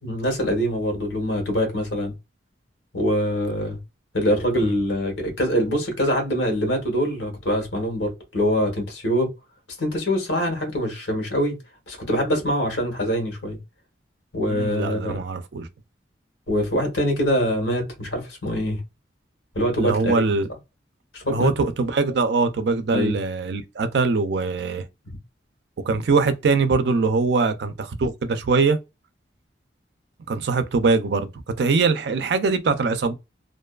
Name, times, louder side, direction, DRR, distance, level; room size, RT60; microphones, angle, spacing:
voice 1, 0.0-2.1 2.9-3.8 4.1-9.3 9.8-11.6 11.9-13.6 14.3-15.2 16.5-18.8 19.5-20.4 21.1-21.5 22.9-23.2 25.1-25.2, equal, 90° left, 1.1 m, -24 dB
voice 2, 14.5-15.7 19.8-20.5 21.3-24.8 25.9-28.8 30.3-31.3 31.6-33.1, right 4 dB, 65° right, 0.4 m, -22 dB
2.6 x 2.2 x 2.2 m
head